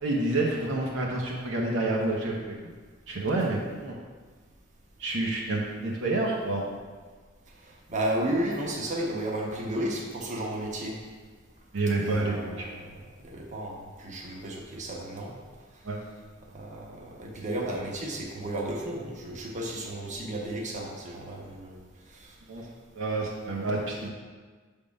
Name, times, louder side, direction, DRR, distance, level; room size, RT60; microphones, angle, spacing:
voice 1, 0.0-2.5 3.1-4.0 5.0-6.7 11.7-12.7 15.8-16.0 22.5-22.6 22.9-24.1, right 2 dB, 65° right, -2 dB, 0.8 m, -28 dB
voice 2, 7.9-11.0 12.0-12.9 13.2-15.3 16.5-21.8 22.2-22.3, right 1 dB, 35° right, -2 dB, 1.0 m, -33 dB
6.6 x 3.6 x 5.3 m, 1.5 s
head